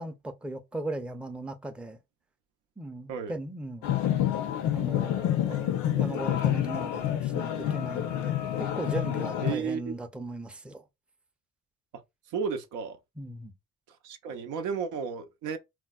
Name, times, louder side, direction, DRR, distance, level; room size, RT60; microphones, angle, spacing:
voice 1, 0.0-2.0 2.8-4.0 4.7-10.8 13.2-13.5, right 1 dB, 5° right, 0.4 m, -38 dB
sound 1, 3.8-9.5, left 11 dB, 80° left, 0.5 m, -28 dB
voice 2, 9.4-9.9 12.3-13.0 14.0-15.6, right 6 dB, 90° right, 0.5 m, -33 dB
4.2 x 2.0 x 2.2 m
cardioid pair, 90°, 30 cm